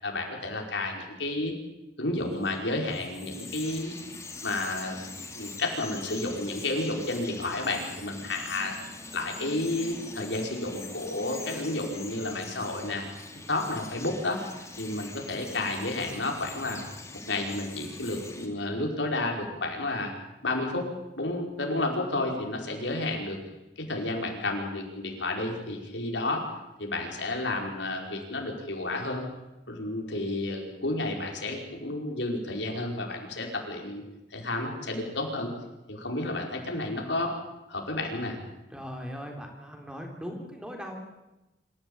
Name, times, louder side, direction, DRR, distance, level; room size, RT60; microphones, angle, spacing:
voice 1, 0.0-1.5 2.0-3.9 4.4-5.1 5.3-8.7 9.1-13.1 13.5-14.4 14.8-16.8 17.3-20.1 20.4-20.8 21.2-23.4 23.8-26.4 26.8-29.3 29.7-34.0 34.3-35.5 35.9-37.3 37.7-38.4, left 2 dB, 80° left, 1 dB, 5.4 m, -31 dB
Bird vocalization bird call bird song, 2.3-18.5, left 3 dB, 15° left, 3.1 m, -43 dB
voice 2, 38.7-41.0, equal, 5° right, 2 dB, 3.7 m, -39 dB
26.0 x 15.5 x 8.9 m, 0.99 s
head